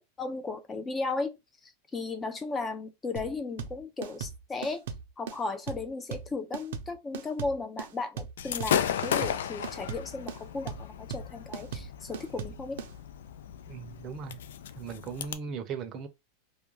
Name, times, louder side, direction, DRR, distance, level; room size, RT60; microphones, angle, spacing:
voice 1, 0.2-1.3 1.6-4.8 5.2-12.8, left 3 dB, 15° left, 0.5 m, -35 dB
sound 1, 3.2-12.9, right 6 dB, 75° right, 0.6 m, -38 dB
Gunshot gunfire / Fireworks, 8.4-15.3, left 9 dB, 85° left, 0.3 m, -34 dB
voice 2, 13.7-14.4 14.8-16.1, right 6 dB, 30° right, 0.6 m, -38 dB
2.4 x 2.2 x 3.1 m
supercardioid pair, 150°, 0 cm